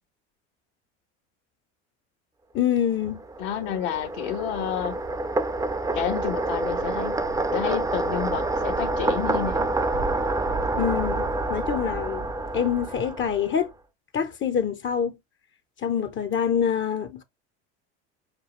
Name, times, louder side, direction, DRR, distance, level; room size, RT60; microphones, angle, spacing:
voice 1, 2.5-3.2 10.7-12.3 12.5-13.7 14.1-15.2 15.8-17.2, left 8 dB, 35° left, 0.7 m, -26 dB
sound 1, 3.0-13.6, right 2 dB, 10° right, 0.6 m, -27 dB
voice 2, 3.4-5.0 5.9-7.2 7.5-9.7, left 10 dB, 65° left, 1.3 m, -30 dB
6.7 x 2.3 x 3.1 m
hypercardioid pair, 85°, 34 cm